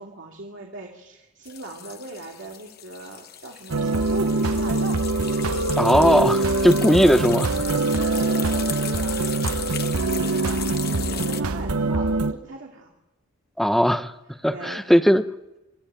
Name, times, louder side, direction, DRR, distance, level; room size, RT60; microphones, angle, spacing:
voice 1, 0.0-5.0 7.7-12.9 14.5-14.8, right 2 dB, 55° right, -1 dB, 2.6 m, -39 dB
sound 1, 1.4-11.4, left 10 dB, 45° left, 1.1 m, -36 dB
sound 2, 3.7-12.3, right 2 dB, 75° right, 1.0 m, -23 dB
voice 2, 5.8-7.5 13.6-14.1 14.4-15.2, equal, ahead, 8 dB, 0.8 m, -18 dB
26.0 x 15.0 x 9.0 m, 1.0 s
head